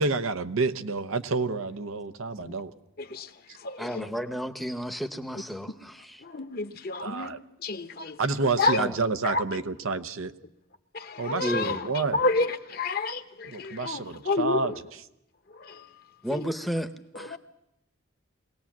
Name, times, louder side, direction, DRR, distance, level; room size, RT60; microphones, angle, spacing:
voice 1, 0.0-2.7 7.0-7.4 8.2-10.3 11.2-12.2 13.5-14.7, right 3 dB, 85° right, 0.9 m, -29 dB
voice 2, 3.0-4.1 6.2-7.3 7.6-8.2 8.6-8.8 9.2-9.6 10.9-14.8 15.5-15.9 16.3-16.5 17.1-17.4, left 3 dB, 45° left, 0.9 m, -30 dB
voice 3, 3.8-5.9 8.8-8.9 11.4-11.8 16.2-16.9 17.1-17.4, equal, ahead, 0.8 m, -32 dB
22.5 x 18.5 x 7.3 m
head